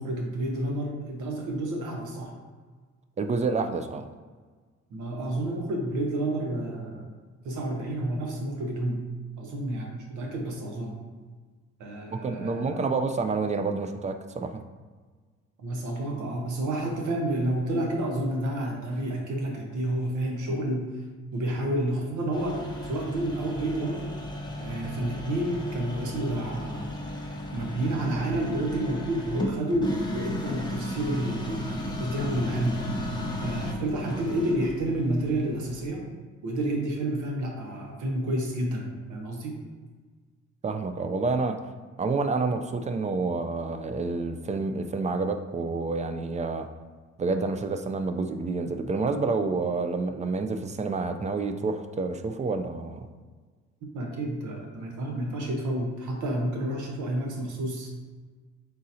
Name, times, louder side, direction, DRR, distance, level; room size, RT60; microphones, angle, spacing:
voice 1, 0.0-2.3 4.9-7.1 7.4-9.0 9.4-11.0 11.8-12.8 15.6-21.0 21.3-24.1 24.6-27.1 27.5-33.0 33.4-36.0 36.4-39.6 53.9-57.9, right 1 dB, 75° right, 0 dB, 1.0 m, -30 dB
voice 2, 3.2-4.1 12.1-14.6 40.6-41.6 42.0-46.7 47.2-53.1, right 4 dB, 25° right, 7 dB, 0.3 m, -28 dB
sound 1, 22.3-35.9, left 1 dB, 15° left, 0.7 m, -35 dB
3.7 x 2.6 x 4.2 m, 1.5 s
cardioid pair, 90°, 30 cm